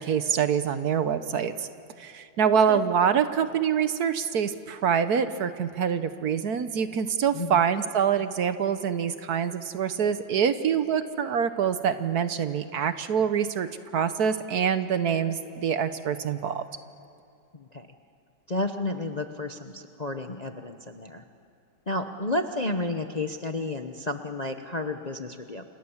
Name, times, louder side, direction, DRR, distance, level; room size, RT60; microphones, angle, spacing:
voice 1, 0.0-1.7 2.0-16.6, right 7 dB, 60° right, 11 dB, 1.3 m, -25 dB
voice 2, 17.5-17.9 18.5-21.2 21.9-25.6, left 2 dB, 35° left, 6 dB, 0.7 m, -31 dB
29.5 x 27.0 x 7.2 m, 2.5 s
omnidirectional pair, 2.1 m